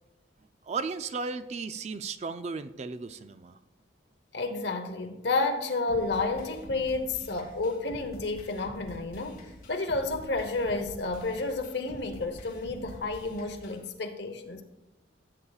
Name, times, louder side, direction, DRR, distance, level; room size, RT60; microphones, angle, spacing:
voice 1, 0.6-3.6, right 4 dB, 35° right, 0.4 m, -35 dB
voice 2, 4.3-14.6, left 3 dB, 65° left, 1.0 m, -31 dB
sound 1, 5.9-13.9, equal, 50° left, 2.1 m, -47 dB
15.5 x 8.1 x 2.4 m
head